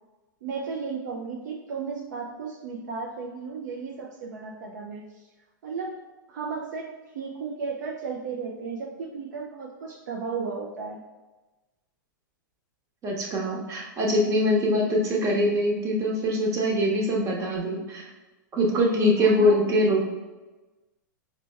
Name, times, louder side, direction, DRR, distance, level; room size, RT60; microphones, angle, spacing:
voice 1, 0.4-5.3 5.6-6.0 6.3-6.9 7.1-11.0 19.2-19.7, right 5 dB, 55° right, 0 dB, 0.5 m, -34 dB
voice 2, 13.0-18.0 18.5-20.0, equal, 25° right, -2 dB, 1.0 m, -23 dB
5.0 x 2.2 x 3.3 m, 1.2 s
figure-of-eight pair, 100°, 11 cm